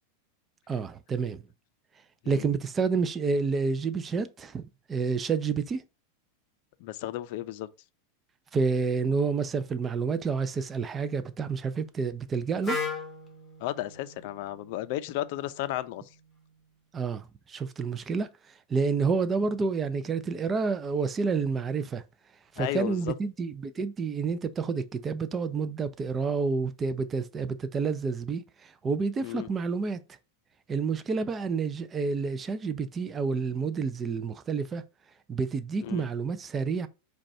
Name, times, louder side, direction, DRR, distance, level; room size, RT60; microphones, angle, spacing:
voice 1, 0.7-1.4 2.3-4.6 4.9-5.8 8.5-12.8 16.9-18.3 18.7-22.0 22.5-30.0 30.7-34.8 35.3-36.9, right 5 dB, 20° right, 0.4 m, -29 dB
voice 2, 6.8-7.7 13.6-16.0 22.6-23.1 29.2-29.5 35.8-36.1, left 14 dB, 55° left, 0.4 m, -33 dB
Wind instrument woodwind instrument, 12.6-16.5, left 4 dB, 5° left, 1.2 m, -39 dB
5.1 x 2.3 x 4.2 m
supercardioid pair, 145°, 0 cm